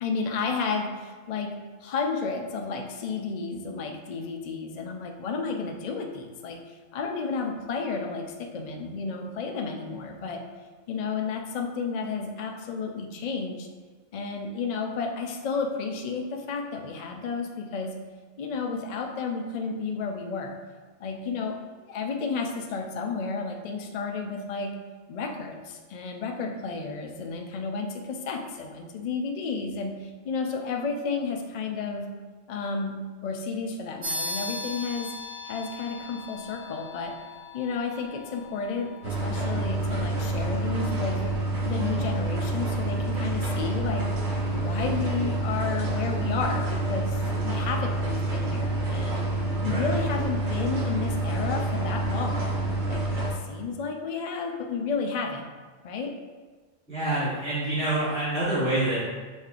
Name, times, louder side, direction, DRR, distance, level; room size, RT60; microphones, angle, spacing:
voice 1, 0.0-10.4 10.9-13.7 14.1-18.0 18.4-20.6 21.0-21.6 21.9-24.8 25.1-32.1 32.5-35.1 35.4-37.2 37.5-41.3 41.6-44.1 44.5-49.2 49.6-52.5 52.9-55.5 55.8-56.2, left 4 dB, 80° left, 3 dB, 0.3 m, -32 dB
sound 1, 34.0-44.0, left 2 dB, 80° right, 1.5 m, -40 dB
sound 2, 39.0-53.3, right 2 dB, 45° right, 0.9 m, -28 dB
voice 2, 56.9-59.0, right 1 dB, 5° left, -10 dB, 0.9 m, -27 dB
6.5 x 3.1 x 2.4 m, 1.4 s
omnidirectional pair, 1.3 m